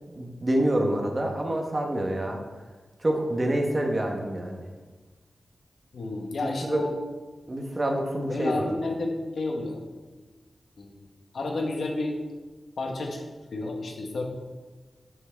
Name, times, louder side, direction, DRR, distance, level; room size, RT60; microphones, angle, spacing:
voice 1, 0.1-2.4 3.0-4.6 6.4-6.9 7.5-8.6, right 1 dB, 25° right, 2 dB, 1.1 m, -27 dB
voice 2, 5.9-6.9 8.2-9.8 10.8-11.0 11.3-12.2 12.8-13.2 13.5-14.2, left 2 dB, 75° left, 2 dB, 1.2 m, -31 dB
11.0 x 6.0 x 3.5 m, 1.3 s
wide cardioid pair, 165°, 0 cm